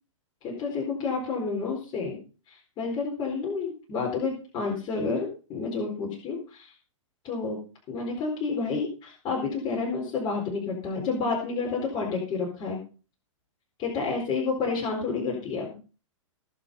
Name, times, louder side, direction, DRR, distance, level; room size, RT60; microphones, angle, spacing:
voice 1, 0.4-2.2 2.5-6.7 7.2-7.6 7.9-12.8 13.8-15.8, left 4 dB, 30° left, -2 dB, 4.3 m, -30 dB
18.5 x 6.2 x 5.5 m, 0.36 s
hypercardioid pair, 130°, 17 cm